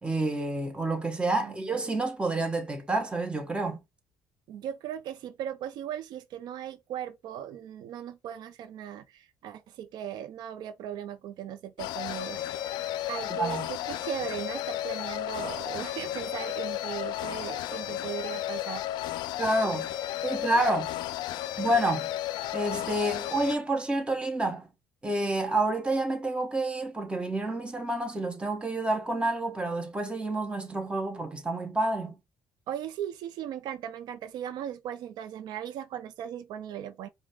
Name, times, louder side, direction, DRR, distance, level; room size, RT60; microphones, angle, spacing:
voice 1, 0.0-3.8 13.4-13.7 19.4-19.9 20.2-20.9 21.6-22.1 22.5-24.7 25.0-32.2, right 2 dB, 15° right, 1.1 m, -29 dB
voice 2, 1.4-1.7 4.5-12.8 13.0-19.1 32.7-37.1, right 10 dB, 70° right, 0.5 m, -38 dB
sound 1, 11.8-23.6, left 13 dB, 75° left, 0.4 m, -33 dB
5.0 x 2.1 x 3.5 m
cardioid pair, 90°, 7 cm